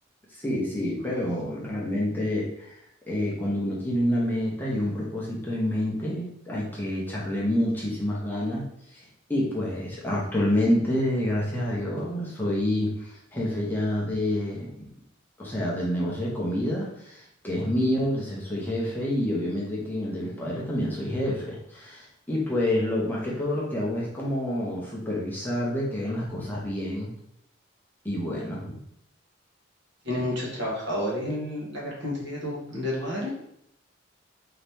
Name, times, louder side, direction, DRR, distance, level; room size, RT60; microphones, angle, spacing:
voice 1, 0.3-2.8 3.1-9.0 9.3-14.9 15.4-27.1 28.0-28.8, left 1 dB, 10° left, -5 dB, 0.7 m, -28 dB
voice 2, 30.0-33.3, left 1 dB, 60° right, -4 dB, 1.4 m, -30 dB
4.0 x 2.9 x 3.4 m, 0.74 s
head